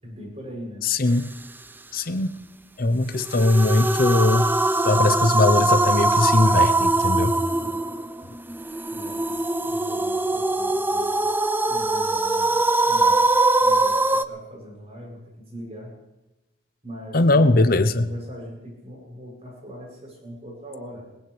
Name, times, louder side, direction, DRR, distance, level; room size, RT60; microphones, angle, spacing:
voice 1, 0.0-0.9 7.6-7.9 8.9-11.2 11.7-12.6 12.9-13.3 13.6-16.0 16.8-21.1, equal, 35° right, -2 dB, 7.5 m, -40 dB
voice 2, 0.8-1.3 1.9-2.4 2.8-4.5 4.8-7.4 17.1-18.1, left 2 dB, 55° left, 11 dB, 0.8 m, -20 dB
sound 1, 3.2-14.2, right 2 dB, 10° right, 0.5 m, -22 dB
21.0 x 19.5 x 3.3 m, 0.99 s
head